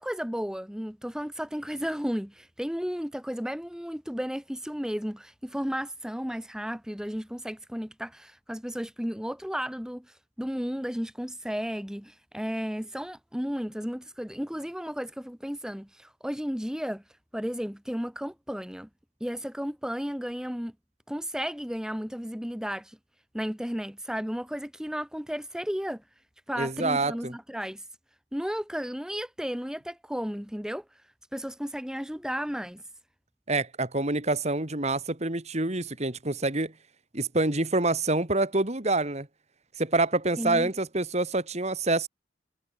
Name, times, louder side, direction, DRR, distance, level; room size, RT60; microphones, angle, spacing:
voice 1, 0.0-17.0 17.3-18.9 19.2-20.7 21.1-23.0 23.3-26.0 26.5-27.8 28.3-30.8 31.3-32.8 40.4-40.7, equal, 5° right, 1.2 m, -33 dB
voice 2, 26.6-27.4 33.5-36.7 37.1-39.3 39.8-42.1, right 2 dB, 35° right, 2.2 m, -27 dB
head